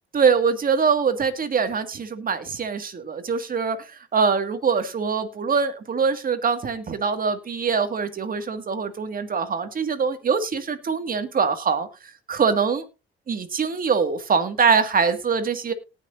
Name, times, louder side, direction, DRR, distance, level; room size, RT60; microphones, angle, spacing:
voice 1, 0.1-11.9 12.3-12.8 13.3-15.7, right 5 dB, 45° right, 9 dB, 2.0 m, -23 dB
18.5 x 6.3 x 2.6 m, 0.27 s
cardioid pair, 90°, 20 cm